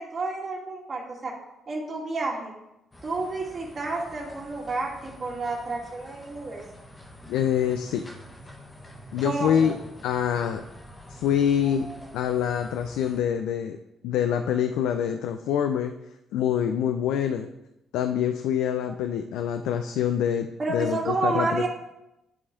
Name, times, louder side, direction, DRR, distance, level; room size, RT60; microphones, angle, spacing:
voice 1, 0.0-1.3 1.7-2.5 3.0-6.6 9.2-9.7 11.6-12.1 20.6-21.7, right 3 dB, 40° right, -4 dB, 2.1 m, -30 dB
sound 1, 2.9-13.2, equal, 20° left, 1.2 m, -47 dB
voice 2, 7.3-8.1 9.1-9.7 10.0-10.6 11.1-11.9 12.1-13.8 14.0-15.9 16.3-17.5 17.9-21.7, left 9 dB, 90° left, 7 dB, 0.4 m, -25 dB
10.0 x 4.2 x 3.7 m, 0.90 s
cardioid pair, 90°, 0 cm